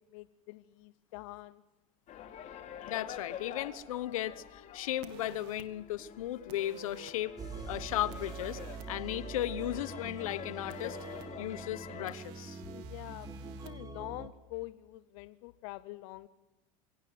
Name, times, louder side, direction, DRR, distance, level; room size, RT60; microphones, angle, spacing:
voice 1, 0.1-1.6 12.7-16.3, left 19 dB, 70° left, 14 dB, 0.7 m, -45 dB
sound 1, 2.1-12.1, left 9 dB, 45° left, 2.7 m, -47 dB
voice 2, 2.8-7.3 7.7-8.6 8.9-11.0 11.4-12.6, left 13 dB, 85° left, 16 dB, 1.1 m, -36 dB
sound 2, 5.0-5.7 6.5-7.1 8.1-8.9 10.7-11.3 12.1-13.7, right 13 dB, 65° right, 1.9 m, -53 dB
sound 3, 7.4-14.3, right 4 dB, 20° right, 1.8 m, -44 dB
24.0 x 16.5 x 7.6 m, 1.1 s
supercardioid pair, 105°, 17 cm